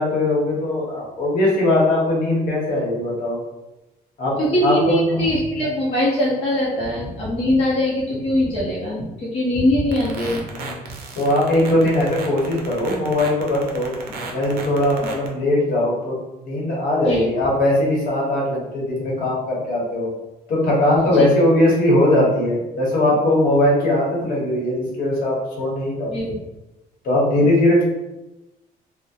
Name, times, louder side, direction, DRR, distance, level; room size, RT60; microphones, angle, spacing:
voice 1, 0.0-3.4 4.2-4.4 4.6-5.2 10.6-10.8 11.1-13.9 14.3-16.2 16.4-20.1 20.5-26.3 27.0-27.8, left 1 dB, 65° left, -4 dB, 0.9 m, -20 dB
voice 2, 4.4-10.4 17.1-17.3 21.1-21.3 26.1-26.4, left 1 dB, 35° left, -7 dB, 0.6 m, -21 dB
sound 1, 9.9-15.3, right 4 dB, 80° right, 0.5 m, -34 dB
2.7 x 2.0 x 2.3 m, 0.99 s
cardioid pair, 145°, 16 cm